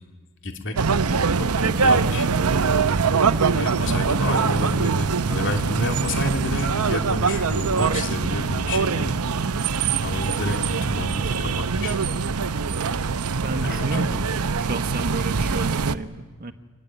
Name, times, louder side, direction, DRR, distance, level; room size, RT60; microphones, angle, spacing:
voice 1, 0.4-1.0 1.3-2.3 3.2-9.2 10.0-12.0 13.6-14.1, left 2 dB, 60° left, 4 dB, 2.9 m, -30 dB
sound 1, 0.8-15.9, right 5 dB, 80° right, 0.8 m, -23 dB
voice 2, 13.3-14.3 14.6-16.5, right 2 dB, 45° right, 8 dB, 1.4 m, -31 dB
24.5 x 21.0 x 9.0 m, 1.3 s
head